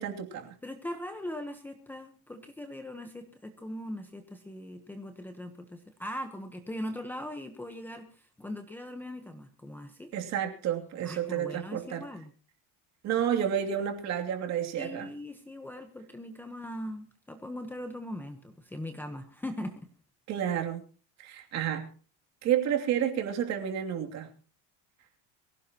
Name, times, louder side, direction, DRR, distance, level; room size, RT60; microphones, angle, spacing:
voice 1, 0.0-0.5 10.1-12.1 13.0-15.1 20.3-20.8 21.2-21.9 22.4-24.3, right 9 dB, 40° right, 2.8 m, -30 dB
voice 2, 0.6-10.1 11.0-12.3 14.8-19.8, left 1 dB, 5° left, 1.0 m, -40 dB
23.5 x 16.5 x 3.0 m
cardioid pair, 180°, 41 cm